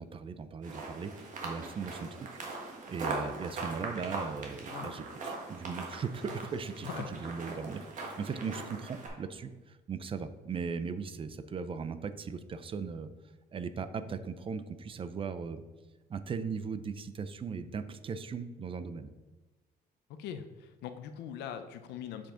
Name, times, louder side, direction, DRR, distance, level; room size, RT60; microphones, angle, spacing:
voice 1, 0.0-2.3 2.9-13.1 13.5-15.6 16.1-19.1, right 5 dB, 30° right, 11 dB, 0.5 m, -38 dB
sound 1, 0.6-9.1, right 3 dB, 50° right, 1.6 m, -40 dB
voice 2, 20.1-22.3, left 9 dB, 80° left, 9 dB, 0.6 m, -41 dB
7.1 x 4.9 x 3.8 m, 1.2 s
cardioid pair, 110°, 17 cm